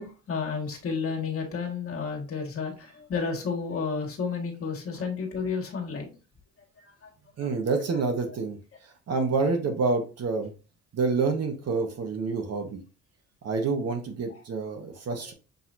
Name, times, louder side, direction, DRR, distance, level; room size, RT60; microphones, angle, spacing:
voice 1, 0.0-6.1 7.4-7.5 14.3-14.4, left 5 dB, 50° left, 2 dB, 1.7 m, -31 dB
voice 2, 7.4-8.6 9.1-10.5 10.9-12.8 13.4-15.3, right 4 dB, 55° right, 4 dB, 1.3 m, -27 dB
6.6 x 3.0 x 2.6 m, 0.33 s
cardioid pair, 90°, 30 cm